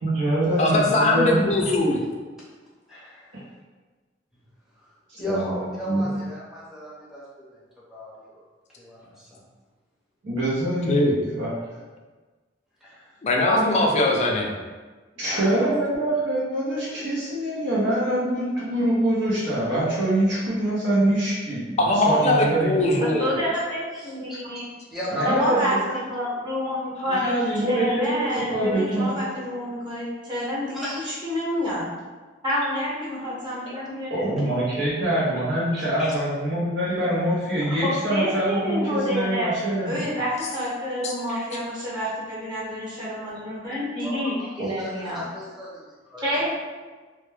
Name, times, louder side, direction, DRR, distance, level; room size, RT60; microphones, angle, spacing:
voice 1, 0.0-1.5 5.1-5.6 5.9-6.1 10.2-11.5 15.2-21.8 22.1-22.8 25.1-26.0 27.1-29.1 34.1-40.1 44.6-44.7, right 1 dB, 70° right, -7 dB, 0.6 m, -24 dB
voice 2, 0.6-2.0 10.9-11.1 13.2-14.5 21.8-23.4 29.2-29.3 41.0-41.4, left 1 dB, 40° left, 0 dB, 0.4 m, -21 dB
voice 3, 2.9-3.4 4.3-4.4 4.8-7.6 7.9-8.4 8.8-9.4 12.8-13.2 15.1-15.7 23.9-24.4 24.9-25.4 30.7-30.9 33.8-33.9 34.2-34.3 35.8-36.2 43.6-46.3, equal, ahead, -9 dB, 0.7 m, -36 dB
voice 4, 23.0-24.6 25.2-31.9 32.4-34.4 37.8-39.5 39.8-45.2 46.2-46.5, equal, 25° right, -9 dB, 0.9 m, -28 dB
2.2 x 2.1 x 3.1 m, 1.3 s
head